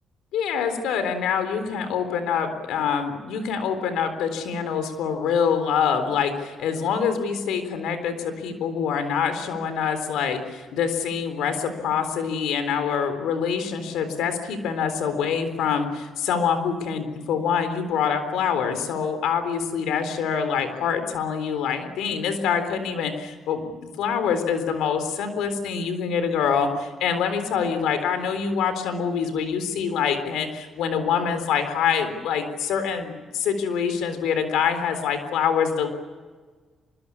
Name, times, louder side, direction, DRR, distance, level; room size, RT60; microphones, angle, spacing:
voice 1, 0.3-35.9, left 7 dB, 85° left, 9 dB, 3.8 m, -25 dB
24.5 x 22.0 x 8.6 m, 1.4 s
cardioid pair, 90°, 0 cm